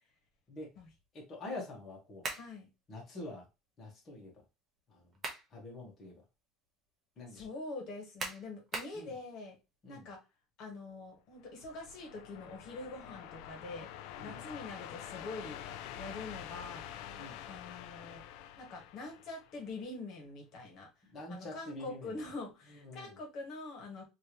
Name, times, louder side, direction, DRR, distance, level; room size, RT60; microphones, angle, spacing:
voice 1, 1.1-2.2 2.9-3.5 3.8-4.4 4.9-5.1 5.5-6.2 7.2-7.5 8.9-9.2 9.8-10.1 14.2-14.4 17.2-17.4 21.1-22.3 22.7-23.2, left 2 dB, 25° left, -2 dB, 1.3 m, -46 dB
sound 1, 2.2-2.5 4.9-5.5 6.0-6.1 8.2-9.0, right 3 dB, 25° right, 0.8 m, -39 dB
voice 2, 2.4-2.7 7.3-9.5 9.9-10.2 10.6-13.9 14.2-15.6 16.0-16.8 17.5-18.2 18.6-20.9 21.3-24.0, left 3 dB, 45° left, 1 dB, 1.5 m, -44 dB
sound 2, 11.4-19.9, left 10 dB, 65° left, 0.4 m, -47 dB
3.4 x 2.8 x 3.0 m, 0.26 s
cardioid pair, 165°, 0 cm